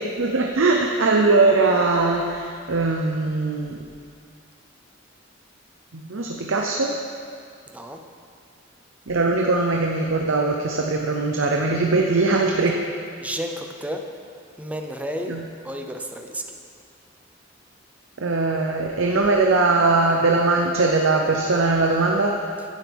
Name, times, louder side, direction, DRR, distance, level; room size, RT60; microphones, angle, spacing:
voice 1, 0.0-3.8 5.9-7.0 9.1-12.8 15.3-15.4 18.2-22.4, right 3 dB, 85° right, 1 dB, 0.9 m, -21 dB
voice 2, 13.2-14.0 14.6-15.3 15.6-16.4, equal, 5° right, 4 dB, 0.7 m, -31 dB
14.5 x 10.5 x 3.6 m, 2.3 s
head